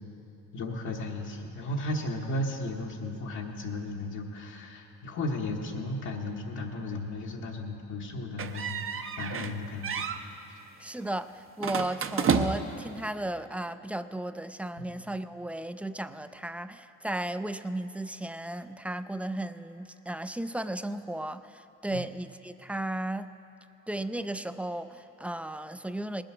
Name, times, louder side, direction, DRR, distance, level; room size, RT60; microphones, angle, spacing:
voice 1, 0.5-10.1 10.5-10.6 14.8-14.9 21.9-22.0, left 1 dB, 75° left, -2 dB, 1.2 m, -35 dB
sound 1, 8.4-9.6 9.8-10.2 11.6-12.8, right 6 dB, 45° right, 0.7 m, -30 dB
voice 2, 10.8-23.3 23.9-26.2, right 1 dB, 5° right, 12 dB, 0.3 m, -35 dB
19.5 x 7.8 x 6.0 m, 2.8 s
cardioid pair, 90°, 30 cm